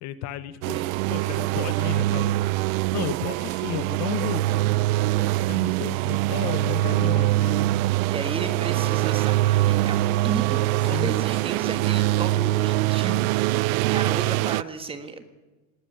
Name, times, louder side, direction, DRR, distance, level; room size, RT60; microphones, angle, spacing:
voice 1, 0.0-0.8 1.1-2.4 2.9-4.6 5.1-7.7 10.9-11.1, left 12 dB, 40° left, 14 dB, 0.9 m, -33 dB
sound 1, 0.6-14.6, right 17 dB, 70° right, 0.6 m, -23 dB
voice 2, 0.7-1.1 8.1-13.7 13.9-15.3, right 4 dB, 10° right, 9 dB, 1.4 m, -35 dB
19.0 x 16.0 x 10.0 m, 1.2 s
supercardioid pair, 165°, 44 cm